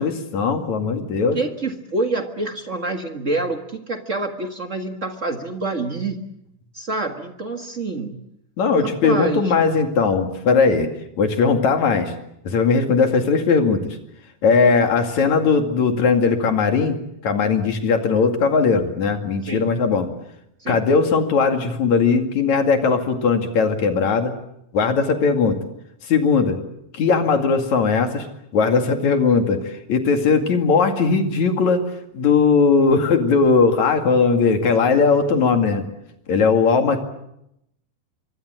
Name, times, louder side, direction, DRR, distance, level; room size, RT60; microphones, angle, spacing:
voice 1, 0.0-1.4 8.6-10.9 11.2-12.1 12.5-14.0 14.4-17.0 17.2-20.1 20.7-24.3 24.7-25.6 26.1-26.6 26.9-28.3 28.5-31.8 32.1-35.8 36.3-37.0, left 5 dB, 55° left, 5 dB, 3.4 m, -18 dB
voice 2, 1.3-6.3 6.7-8.2 8.8-9.5 19.5-19.7 20.6-20.8, right 2 dB, 45° right, 5 dB, 1.0 m, -27 dB
25.5 x 24.5 x 7.7 m, 0.80 s
omnidirectional pair, 4.2 m